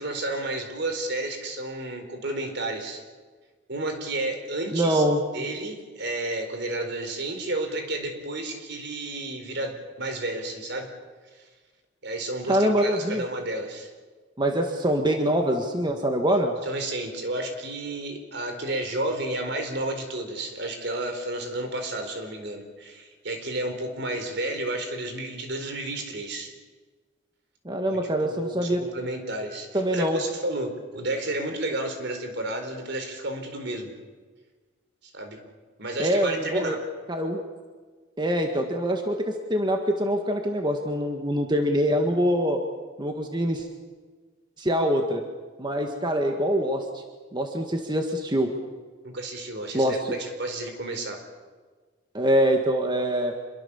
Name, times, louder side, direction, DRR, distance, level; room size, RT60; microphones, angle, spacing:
voice 1, 0.0-3.0 3.7-5.0 5.3-10.9 11.3-11.4 12.0-13.9 16.6-26.5 27.9-28.0 28.3-33.9 35.1-35.4 35.8-36.8 49.0-51.2, right 2 dB, 60° right, 6 dB, 4.2 m, -31 dB
voice 2, 4.7-5.2 12.5-13.2 14.4-16.5 27.7-28.8 29.7-30.2 36.0-36.8 37.1-37.4 38.2-42.6 43.0-43.7 44.6-45.2 45.6-47.0 47.3-48.5 49.7-50.1 52.1-53.3, equal, 25° right, 3 dB, 1.8 m, -24 dB
27.0 x 23.0 x 7.2 m, 1.4 s
head